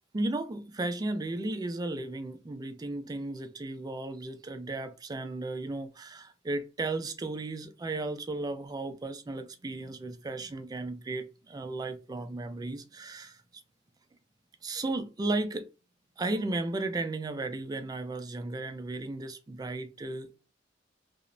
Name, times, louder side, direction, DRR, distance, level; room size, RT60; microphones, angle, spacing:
voice 1, 0.1-13.6 14.6-15.7 16.2-20.4, right 2 dB, 20° right, 0.3 m, -35 dB
2.8 x 2.0 x 2.5 m
head